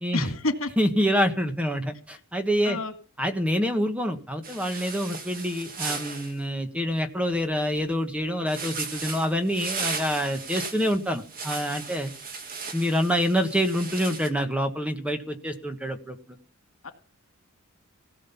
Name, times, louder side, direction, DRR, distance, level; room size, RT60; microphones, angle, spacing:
voice 1, 0.1-0.7 2.6-2.9 16.8-16.9, left 2 dB, 80° left, 7 dB, 2.3 m, -28 dB
voice 2, 0.8-2.8 3.2-12.1 12.7-16.2, equal, 5° right, 6 dB, 1.4 m, -26 dB
sound 1, 4.4-6.3 8.5-14.3, right 4 dB, 45° right, 2.0 m, -36 dB
17.0 x 6.3 x 7.2 m, 0.39 s
head